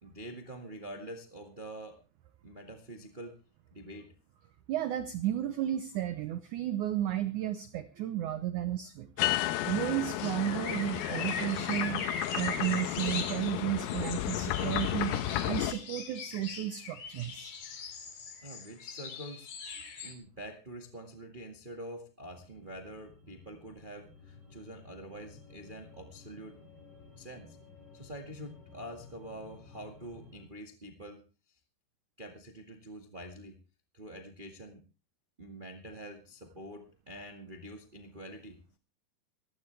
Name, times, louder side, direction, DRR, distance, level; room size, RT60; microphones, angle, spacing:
voice 1, 0.0-2.0 2.4-3.4 3.7-4.1 18.4-19.5 20.0-26.6 27.2-27.6 27.9-31.2 31.5-31.6 32.2-33.5 33.9-34.8 35.4-38.6, right 1 dB, 55° right, 3 dB, 0.5 m, -46 dB
voice 2, 4.7-9.3 9.7-12.0 12.3-17.5, right 12 dB, 90° right, 11 dB, 1.7 m, -33 dB
sound 1, 9.2-15.7, left 13 dB, 75° left, 2.5 m, -33 dB
sound 2, 10.2-20.1, left 5 dB, 55° left, 3.9 m, -40 dB
sound 3, 22.3-30.5, left 3 dB, 35° left, 7.2 m, -55 dB
18.5 x 15.5 x 3.4 m, 0.33 s
omnidirectional pair, 4.8 m